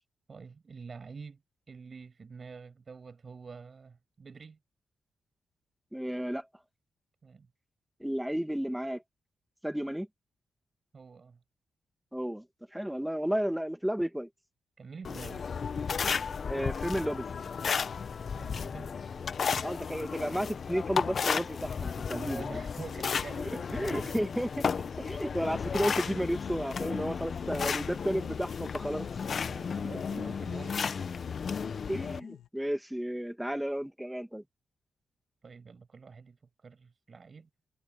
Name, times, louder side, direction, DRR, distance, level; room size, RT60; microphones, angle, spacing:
voice 1, 0.3-1.4 1.7-4.6 7.2-7.5 10.9-11.4 14.8-15.4 18.3-18.9 22.1-24.3 29.5-31.0 35.4-37.5, right 5 dB, 50° right, 7.5 m, -47 dB
voice 2, 5.9-6.5 8.0-9.0 9.6-10.1 12.1-12.4 12.7-14.3 16.0-16.2 16.5-17.3 19.6-22.6 23.4-24.5 25.0-29.1 29.8-30.0 31.9-34.4, equal, 5° right, 2.5 m, -33 dB
sound 1, 15.0-32.2, left 6 dB, 60° left, 1.1 m, -34 dB
sound 2, 27.5-30.7 31.2-32.5, left 10 dB, 80° left, 3.3 m, -50 dB
supercardioid pair, 50°, 0 cm